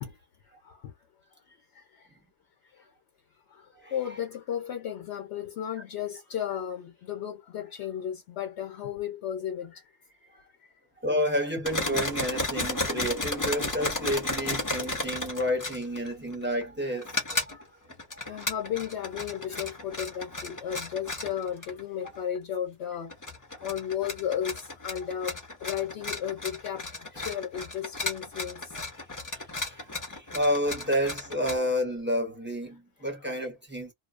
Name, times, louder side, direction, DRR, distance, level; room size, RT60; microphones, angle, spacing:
voice 1, 3.9-9.8 18.3-23.1 23.6-26.8 27.2-28.7, left 9 dB, 75° left, 0.9 m, -34 dB
voice 2, 11.0-17.7 18.3-18.4 29.6-29.9 30.1-33.9, equal, 10° right, 0.8 m, -30 dB
sound 1, 11.6-16.6 17.0-17.6 17.9-22.4 23.1-31.6, left 2 dB, 20° left, 0.6 m, -34 dB
2.6 x 2.0 x 2.4 m
omnidirectional pair, 1.2 m